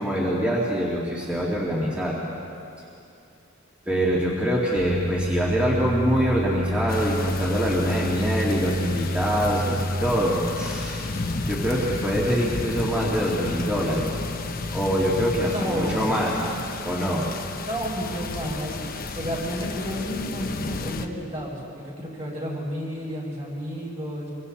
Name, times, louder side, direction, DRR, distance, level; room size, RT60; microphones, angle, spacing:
voice 1, 0.0-2.2 3.9-11.1 11.4-14.1 14.7-16.4 16.8-17.3, equal, 5° right, -6 dB, 2.5 m, -24 dB
sound 1, 4.7-15.4, equal, 55° right, 2.1 m, -30 dB
sound 2, 6.9-21.1, left 3 dB, 45° left, 1.1 m, -33 dB
voice 2, 15.5-16.2 17.6-24.3, equal, 35° right, -4 dB, 6.9 m, -31 dB
26.5 x 24.5 x 4.2 m, 2.6 s
head